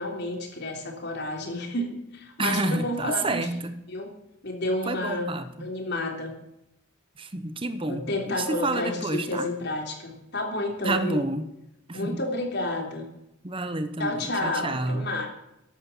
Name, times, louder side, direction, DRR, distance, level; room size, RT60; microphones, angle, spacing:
voice 1, 0.0-3.4 3.9-4.1 4.4-5.3 5.6-6.4 7.9-11.2 11.9-13.1 14.0-15.3, left 2 dB, 55° left, 2 dB, 3.5 m, -30 dB
voice 2, 2.4-3.7 4.9-5.7 7.2-9.5 10.8-11.5 11.9-12.2 13.4-15.1, right 2 dB, 25° right, 11 dB, 0.9 m, -29 dB
14.0 x 11.0 x 7.2 m, 0.86 s
head